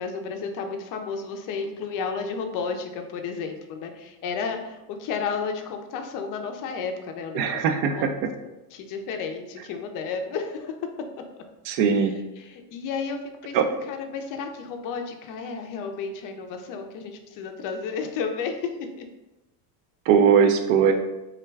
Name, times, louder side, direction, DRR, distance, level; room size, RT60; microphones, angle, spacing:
voice 1, 0.0-8.2 8.7-10.8 11.3-11.4 12.0-19.1, left 5 dB, 45° left, 5 dB, 0.4 m, -32 dB
voice 2, 7.4-8.1 11.7-12.1 13.5-13.6 20.1-20.9, right 7 dB, 65° right, 6 dB, 0.5 m, -20 dB
2.4 x 2.2 x 3.2 m, 1.0 s
supercardioid pair, 105°, 47 cm